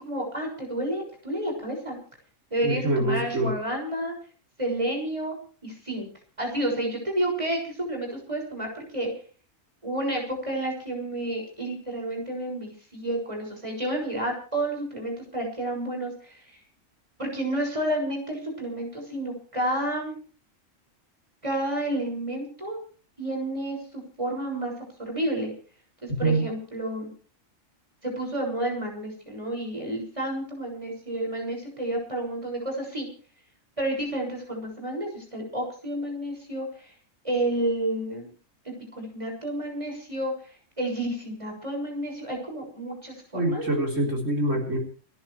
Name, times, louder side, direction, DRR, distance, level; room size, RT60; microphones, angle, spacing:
voice 1, 0.0-2.0 2.5-4.1 4.6-5.3 5.6-6.1 6.4-9.1 9.8-16.4 17.2-20.2 21.4-22.8 23.2-24.7 25.0-25.5 26.0-27.1 28.0-33.1 33.8-36.9 37.2-38.3 38.6-40.3 40.8-43.6, right 1 dB, 25° right, 1 dB, 6.6 m, -30 dB
voice 2, 2.6-3.5 26.1-26.5 43.3-44.8, right 2 dB, 65° right, 2 dB, 4.6 m, -25 dB
30.0 x 11.0 x 3.3 m, 0.41 s
omnidirectional pair, 1.4 m